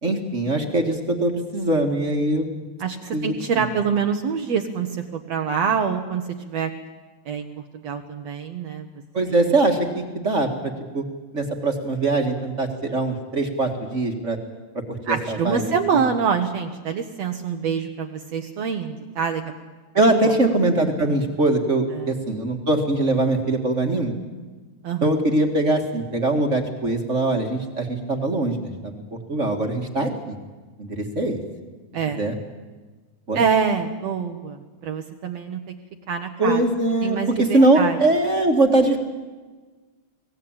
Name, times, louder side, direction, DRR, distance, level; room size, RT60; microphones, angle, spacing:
voice 1, 0.0-2.6 3.1-3.2 3.6-3.7 9.1-11.0 11.3-14.4 15.1-16.0 19.9-24.1 25.0-30.3 30.8-31.4 32.2-32.4 33.3-33.4 36.4-39.0, right 2 dB, 30° right, 3 dB, 1.8 m, -22 dB
voice 2, 2.8-6.7 7.3-7.5 7.8-8.9 15.1-19.5 20.1-20.3 22.0-22.1 24.8-25.1 31.9-32.2 33.3-34.6 34.8-35.6 36.1-36.6 37.0-38.0, right 6 dB, 65° right, 5 dB, 2.1 m, -25 dB
24.5 x 18.0 x 8.9 m, 1.3 s
omnidirectional pair, 3.5 m